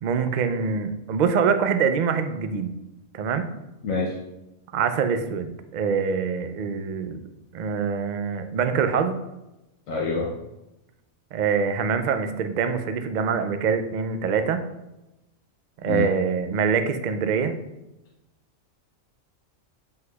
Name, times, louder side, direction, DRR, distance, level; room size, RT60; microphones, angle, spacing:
voice 1, 0.0-2.7 3.1-3.5 4.7-7.2 7.5-9.2 11.3-14.6 15.8-17.6, right 6 dB, 85° right, 9 dB, 0.4 m, -24 dB
voice 2, 9.9-10.3 15.8-16.1, left 3 dB, 80° left, -2 dB, 1.1 m, -26 dB
7.8 x 5.4 x 2.3 m, 0.96 s
omnidirectional pair, 1.4 m